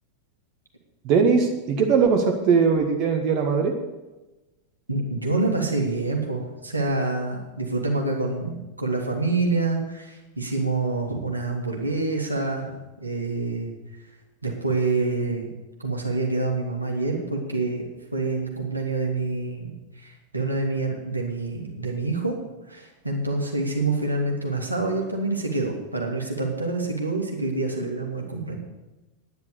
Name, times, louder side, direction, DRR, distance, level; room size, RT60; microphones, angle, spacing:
voice 1, 1.0-3.7, right 5 dB, 40° right, 3 dB, 1.5 m, -20 dB
voice 2, 4.9-12.7 13.0-13.7 14.4-15.5 15.8-17.9 18.1-19.7 20.0-22.4 22.7-28.6, right 3 dB, 85° right, 0 dB, 2.3 m, -27 dB
10.5 x 10.0 x 6.8 m, 1.1 s
figure-of-eight pair, 90°, 0 cm